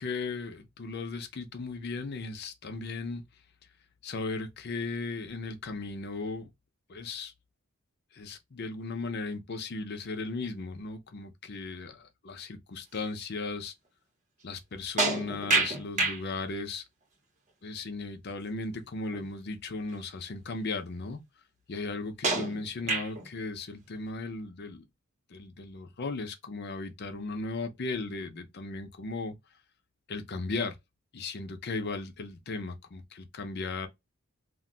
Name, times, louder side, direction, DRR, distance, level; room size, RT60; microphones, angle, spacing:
voice 1, 0.0-3.2 4.0-6.5 6.9-7.3 8.1-13.7 14.4-16.8 17.6-21.2 21.7-24.8 25.3-29.4 30.1-30.8 31.1-33.9, left 3 dB, 50° left, 0.6 m, -36 dB
sound 1, 15.0-16.2 19.1-19.2 19.9-20.0 22.2-23.3, right 3 dB, 35° right, 0.8 m, -28 dB
2.5 x 2.2 x 3.7 m
head